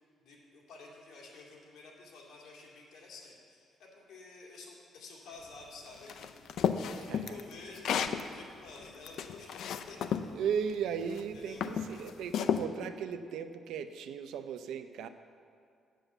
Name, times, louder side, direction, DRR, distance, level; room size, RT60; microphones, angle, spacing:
voice 1, 0.2-6.4 7.0-10.0 11.3-11.6, left 3 dB, 90° left, -3 dB, 2.3 m, -51 dB
sound 1, 6.1-8.2 8.8-10.3 11.0-11.2 11.6-12.6, left 8 dB, 65° left, 0.4 m, -32 dB
voice 2, 6.9-7.4 10.3-15.1, right 7 dB, 90° right, 9 dB, 0.5 m, -36 dB
8.1 x 7.6 x 6.6 m, 2.3 s
cardioid pair, 165°, 0 cm